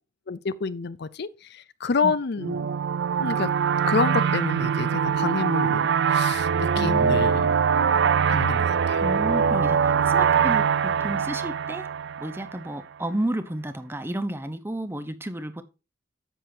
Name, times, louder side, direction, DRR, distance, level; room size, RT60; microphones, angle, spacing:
voice 1, 0.3-2.7 3.1-3.5 3.9-6.5 6.8-7.5 8.3-9.1, left 5 dB, 60° left, 0.5 m, -28 dB
sound 1, 2.4-12.7, right 7 dB, 65° right, 0.4 m, -23 dB
voice 2, 6.7-7.3 9.0-11.9 12.2-15.6, right 1 dB, 10° right, 0.9 m, -32 dB
10.0 x 7.6 x 2.7 m
head